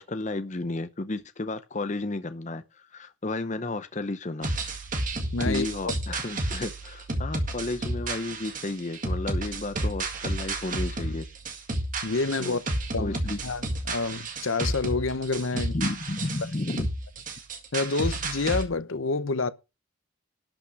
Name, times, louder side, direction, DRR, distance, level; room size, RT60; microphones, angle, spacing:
voice 1, 0.0-4.5 5.4-11.2 12.4-12.6 13.0-13.4 15.7-16.9, left 2 dB, 35° left, 0.7 m, -32 dB
sound 1, 4.4-18.6, right 2 dB, 40° right, 1.8 m, -32 dB
voice 2, 5.3-5.9 12.0-12.6 12.9-15.8 17.7-19.5, left 3 dB, 70° left, 0.8 m, -28 dB
12.0 x 5.9 x 6.0 m
head